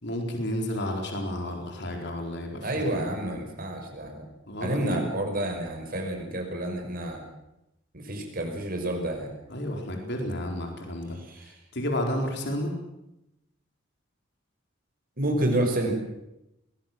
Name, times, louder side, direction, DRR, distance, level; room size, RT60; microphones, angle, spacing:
voice 1, 0.0-2.8 3.2-3.3 4.5-5.0 9.5-11.2 11.7-12.7, left 1 dB, 65° left, 2 dB, 4.4 m, -31 dB
voice 2, 2.6-4.3 4.6-7.2 7.9-9.3 11.2-11.5 15.2-15.9, right 1 dB, 50° right, 3 dB, 5.6 m, -29 dB
22.0 x 19.0 x 7.7 m, 0.88 s
head